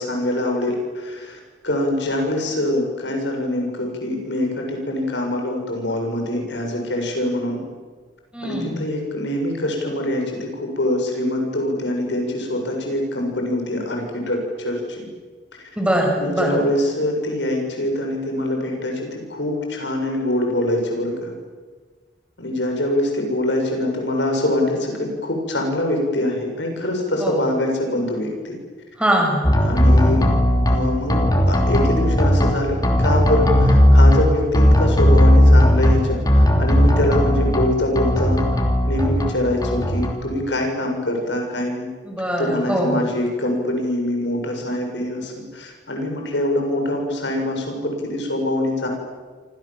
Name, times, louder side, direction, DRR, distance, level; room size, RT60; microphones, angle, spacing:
voice 1, 0.0-7.6 8.4-15.1 16.2-21.3 22.4-28.6 29.6-30.3 30.7-38.4 38.9-41.9 42.4-48.9, left 1 dB, 75° left, 2 dB, 7.3 m, -24 dB
voice 2, 8.3-8.8 15.8-16.5 27.2-27.4 29.0-29.5 42.1-43.0, equal, 5° right, 0 dB, 6.9 m, -22 dB
sound 1, 29.4-30.8 31.1-32.5 32.8-34.2 34.5-35.9 36.3-37.6 38.0-39.3 39.6-40.1, equal, 20° left, 3.2 m, -15 dB
29.5 x 26.5 x 7.7 m, 1.4 s
head